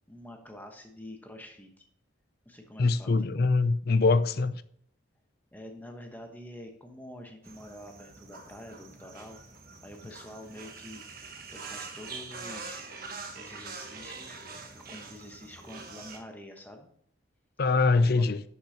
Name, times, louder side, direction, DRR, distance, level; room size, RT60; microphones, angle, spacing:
voice 1, 0.1-1.7 2.4-3.4 5.5-9.4 9.8-12.9 13.4-14.4 14.7-16.9 17.9-18.3, left 1 dB, 10° left, 1.1 m, -47 dB
voice 2, 2.8-4.6 17.6-18.4, left 3 dB, 50° left, 0.4 m, -23 dB
sound 1, 7.4-16.2, right 4 dB, 45° right, 1.3 m, -44 dB
11.5 x 6.8 x 2.9 m
head